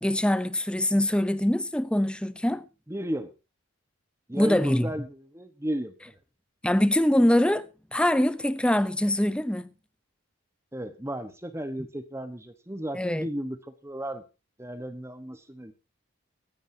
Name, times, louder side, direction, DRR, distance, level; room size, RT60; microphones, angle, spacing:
voice 1, 0.0-2.7 4.3-4.9 6.6-9.7 12.9-13.3, left 1 dB, 5° left, 0.7 m, -24 dB
voice 2, 2.9-3.3 4.3-6.1 10.7-14.2 14.6-15.7, equal, 10° right, 1.1 m, -34 dB
24.0 x 9.4 x 2.8 m
head